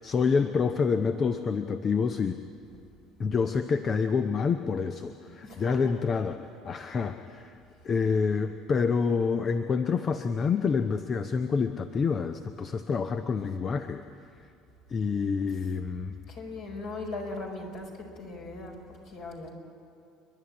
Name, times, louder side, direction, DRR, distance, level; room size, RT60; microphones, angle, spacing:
voice 1, 0.0-2.4 3.2-6.4 6.6-7.5 7.8-14.0 14.9-16.1, left 5 dB, 35° left, 10 dB, 0.8 m, -27 dB
voice 2, 5.4-5.8 16.3-17.9 18.2-19.5, left 2 dB, 55° left, 0 dB, 5.1 m, -39 dB
29.5 x 11.5 x 9.9 m, 2.5 s
figure-of-eight pair, 60°, 0 cm